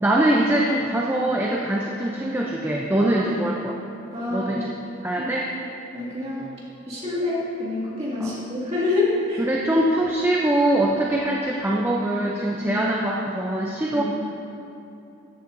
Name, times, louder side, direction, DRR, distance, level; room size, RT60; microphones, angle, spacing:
voice 1, 0.0-3.8 4.3-4.7 5.0-5.5 8.2-8.3 9.4-14.0, right 1 dB, 10° right, -3 dB, 0.4 m, -23 dB
voice 2, 4.1-4.6 5.2-5.3 5.9-6.5 6.9-9.4 11.0-11.1 12.6-12.8 13.9-14.0, left 2 dB, 30° right, -7 dB, 2.1 m, -27 dB
13.5 x 8.2 x 2.6 m, 2.9 s
head